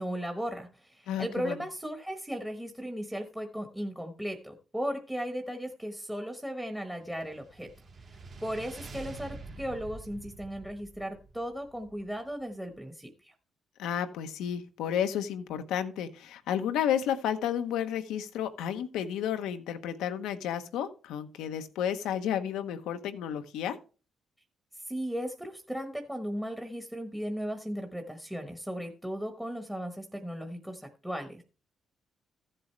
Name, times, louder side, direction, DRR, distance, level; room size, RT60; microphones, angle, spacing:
voice 1, 0.0-7.7 8.1-13.3 24.9-31.4, equal, 5° right, 6 dB, 1.2 m, -36 dB
voice 2, 1.1-1.6 13.8-23.8, left 9 dB, 90° left, 8 dB, 1.0 m, -32 dB
sound 1, 7.1-12.5, right 3 dB, 55° right, 2.2 m, -47 dB
14.5 x 7.7 x 3.3 m, 0.36 s
cardioid pair, 90°, 0 cm